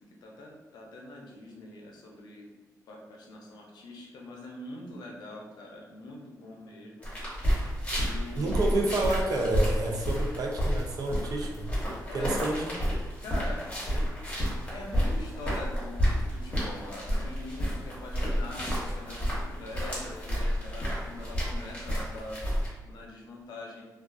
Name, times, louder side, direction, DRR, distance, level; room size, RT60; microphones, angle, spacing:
voice 1, 0.2-2.5 2.9-7.1 8.0-9.2 12.1-12.8 13.2-13.6 13.9-14.1 14.7-22.4 22.8-23.8, left 2 dB, 90° left, -1 dB, 0.5 m, -43 dB
sound 1, 7.0-22.7, equal, 20° left, 1.0 m, -30 dB
voice 2, 8.4-11.7 12.1-12.6, right 2 dB, 65° right, 1 dB, 0.4 m, -29 dB
2.3 x 2.3 x 2.4 m, 1.2 s
cardioid pair, 80°, 7 cm